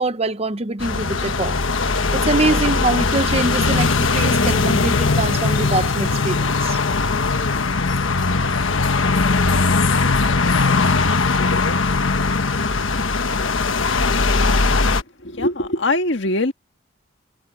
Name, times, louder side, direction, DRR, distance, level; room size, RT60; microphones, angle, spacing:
voice 1, 0.0-1.6 2.1-6.8, right 3 dB, 30° right, 0.9 m, -24 dB
sound 1, 0.8-15.0, left 3 dB, 80° left, 1.3 m, -19 dB
voice 2, 15.2-16.5, left 2 dB, 65° left, 1.9 m, -21 dB
head